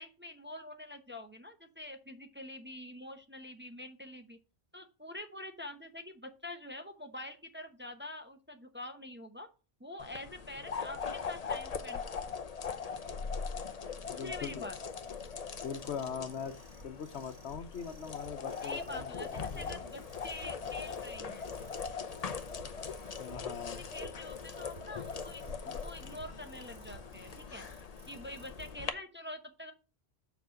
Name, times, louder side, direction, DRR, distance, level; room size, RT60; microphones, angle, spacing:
voice 1, 0.0-4.4 4.7-9.5 9.8-12.0 14.2-14.8 18.6-21.5 23.9-27.7 28.1-29.7, left 1 dB, 10° right, 5 dB, 0.7 m, -46 dB
sound 1, 10.0-28.9, left 5 dB, 40° left, 0.7 m, -41 dB
sound 2, 13.4-28.7, right 4 dB, 85° right, 1.3 m, -56 dB
voice 2, 14.1-14.6 15.6-16.5 16.8-19.8 23.2-23.8, left 7 dB, 80° left, 10 dB, 1.1 m, -41 dB
7.1 x 4.5 x 6.3 m, 0.34 s
omnidirectional pair, 1.1 m